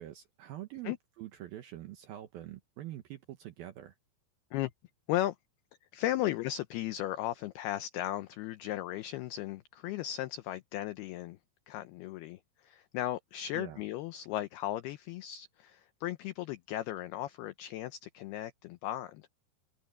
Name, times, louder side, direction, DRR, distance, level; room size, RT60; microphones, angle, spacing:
voice 1, 0.0-3.9 13.5-13.8, right 13 dB, 75° right, 2.2 m, -45 dB
voice 2, 5.9-11.4 11.7-19.3, left 14 dB, 90° left, 2.2 m, -36 dB
omnidirectional pair, 5.5 m